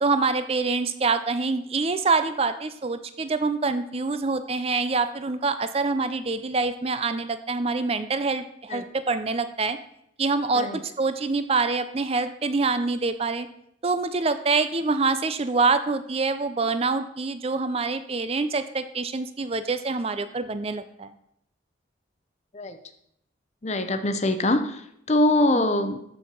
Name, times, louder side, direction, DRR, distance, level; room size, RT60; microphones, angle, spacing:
voice 1, 0.0-9.8 10.2-13.5 13.8-21.1 25.5-25.6, right 4 dB, 30° right, 11 dB, 0.5 m, -25 dB
voice 2, 23.6-24.8 25.1-26.0, left 1 dB, 35° left, 9 dB, 0.7 m, -23 dB
13.5 x 4.6 x 5.3 m, 0.75 s
head